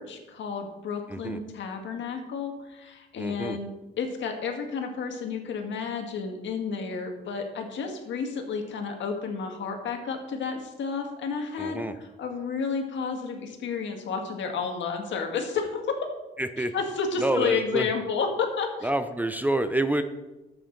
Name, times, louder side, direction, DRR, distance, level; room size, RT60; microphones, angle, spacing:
voice 1, 0.0-16.0 16.6-18.9, left 5 dB, 70° left, 4 dB, 1.7 m, -31 dB
voice 2, 1.1-1.4 3.2-3.6 11.6-11.9 16.4-16.7 17.2-17.9 18.8-20.0, right 1 dB, 10° right, 9 dB, 0.6 m, -27 dB
11.5 x 8.0 x 3.9 m, 1.1 s
cardioid pair, 90°, 20 cm